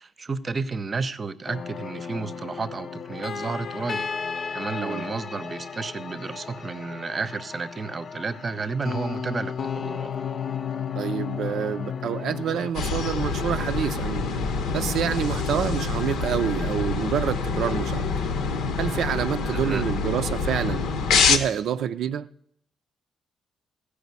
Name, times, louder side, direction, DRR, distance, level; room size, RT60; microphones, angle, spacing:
voice 1, 0.0-4.1 4.5-10.1 19.5-19.8, right 4 dB, 35° right, 0.7 m, -32 dB
sound 1, 1.5-12.7, left 6 dB, 50° left, 0.5 m, -34 dB
voice 2, 11.0-14.3 14.7-18.1 18.8-20.9 21.3-22.3, right 9 dB, 75° right, 0.4 m, -27 dB
sound 2, 12.7-21.4, left 4 dB, 85° left, 0.9 m, -26 dB
14.5 x 4.9 x 8.2 m
cardioid pair, 90°, 0 cm